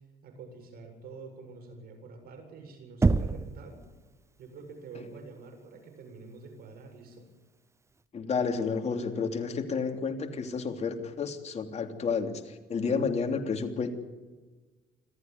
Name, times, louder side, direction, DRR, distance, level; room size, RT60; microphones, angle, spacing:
voice 1, 0.2-3.8 4.4-7.3, right 4 dB, 65° right, 5 dB, 7.8 m, -47 dB
Knock, 3.0-3.7, right 3 dB, 15° right, 0.8 m, -24 dB
voice 2, 8.1-13.9, left 5 dB, 40° left, 5 dB, 3.2 m, -31 dB
26.5 x 14.5 x 9.5 m, 1.3 s
cardioid pair, 110°, 17 cm